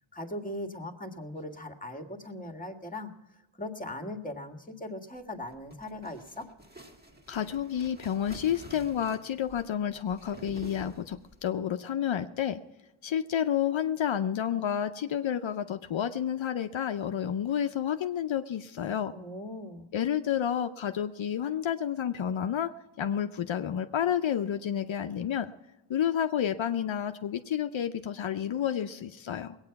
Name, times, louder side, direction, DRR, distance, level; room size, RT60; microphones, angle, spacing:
voice 1, 0.1-6.5 19.1-19.9, left 1 dB, 15° left, 5 dB, 1.7 m, -39 dB
sound 1, 5.4-11.4, equal, 20° right, 1.9 m, -49 dB
voice 2, 7.3-12.6 13.0-19.1 19.9-22.7 23.0-25.5 25.9-29.6, left 9 dB, 70° left, 8 dB, 0.7 m, -30 dB
20.5 x 8.9 x 5.8 m, 1.1 s
wide cardioid pair, 70°, 47 cm